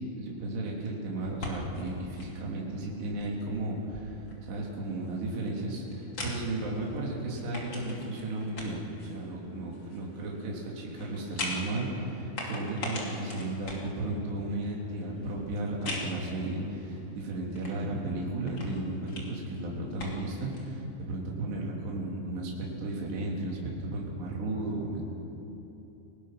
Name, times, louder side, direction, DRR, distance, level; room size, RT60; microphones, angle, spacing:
voice 1, 0.2-4.2 4.4-25.0, right 2 dB, 65° right, -3 dB, 5.3 m, -34 dB
sound 1, 1.2-20.7, left 2 dB, 30° left, 2.8 m, -43 dB
sound 2, 7.0-15.3, right 1 dB, 80° left, 5.9 m, -54 dB
30.0 x 19.0 x 6.1 m, 3.0 s
omnidirectional pair, 5.4 m